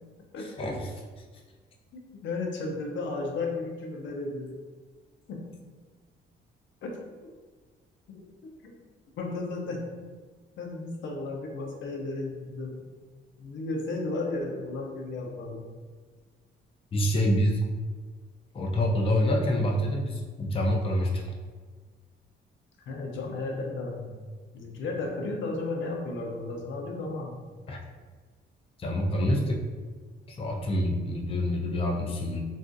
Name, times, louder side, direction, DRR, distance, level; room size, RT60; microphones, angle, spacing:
voice 1, 0.4-0.9 16.9-17.6 18.5-21.3 27.7-27.8 28.8-29.6 30.3-32.4, equal, 30° left, 0 dB, 0.4 m, -27 dB
voice 2, 1.9-4.5 5.3-5.4 6.8-7.3 8.1-8.7 9.2-9.8 10.6-12.9 13.4-15.7 22.9-24.1 24.5-27.4, left 3 dB, 70° left, 1 dB, 0.6 m, -34 dB
3.6 x 2.3 x 2.5 m, 1.4 s
cardioid pair, 90°, 20 cm